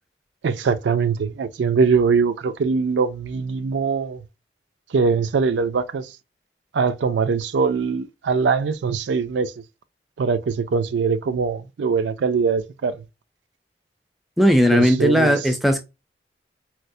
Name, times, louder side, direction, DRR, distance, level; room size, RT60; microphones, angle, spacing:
voice 1, 0.4-4.2 4.9-6.1 6.7-9.5 10.2-12.9 14.7-15.4, right 5 dB, 80° right, 0.4 m, -22 dB
voice 2, 14.4-15.8, equal, ahead, 0.3 m, -17 dB
4.4 x 2.0 x 2.5 m
head